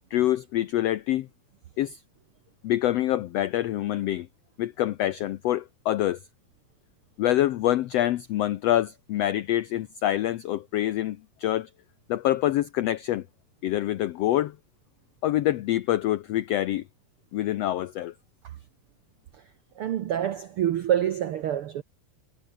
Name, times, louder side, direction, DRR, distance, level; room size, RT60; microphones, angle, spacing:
voice 1, 0.1-1.3 1.8-2.0 2.6-4.3 4.6-6.2 7.2-11.7 12.1-13.2 13.6-14.5 15.2-16.8 17.3-18.1, left 13 dB, 85° left, 1.4 m, -26 dB
voice 2, 19.8-21.8, right 10 dB, 90° right, 1.2 m, -26 dB
omnidirectional pair, 3.8 m